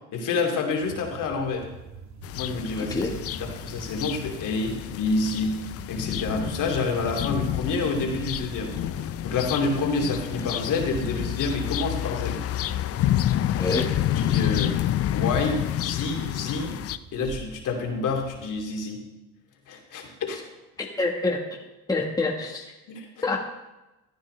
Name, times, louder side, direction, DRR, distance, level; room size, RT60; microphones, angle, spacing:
voice 1, 0.1-1.7 2.3-3.0 3.3-5.5 5.9-8.7 9.2-12.4 14.1-14.7 15.1-16.8 17.1-19.0 19.7-20.4 22.9-23.2, left 3 dB, 55° left, 1 dB, 2.6 m, -28 dB
sound 1, 0.8-18.7, right 5 dB, 50° right, 1.4 m, -46 dB
sound 2, 2.2-17.0, left 12 dB, 40° left, 0.5 m, -29 dB
voice 2, 2.7-3.1 13.6-13.9 20.8-22.7 23.2-23.4, left 3 dB, 10° left, 0 dB, 1.4 m, -27 dB
14.5 x 9.7 x 3.3 m, 1.0 s
supercardioid pair, 95°, 36 cm